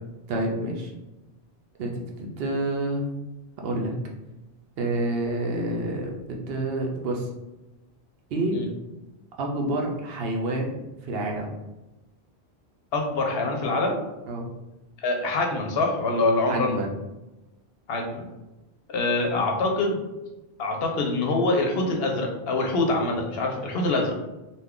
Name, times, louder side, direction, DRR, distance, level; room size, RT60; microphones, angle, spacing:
voice 1, 0.3-0.9 1.8-3.1 3.6-3.9 4.8-7.3 8.3-8.6 9.4-10.8 11.1-11.5 14.3-14.5 16.5-16.9, right 1 dB, 65° right, 0 dB, 0.8 m, -28 dB
voice 2, 12.9-14.0 15.0-16.7 17.9-18.3 18.9-20.0 20.6-24.2, left 2 dB, 65° left, 2 dB, 0.8 m, -25 dB
2.6 x 2.3 x 3.5 m, 1.0 s
omnidirectional pair, 1.1 m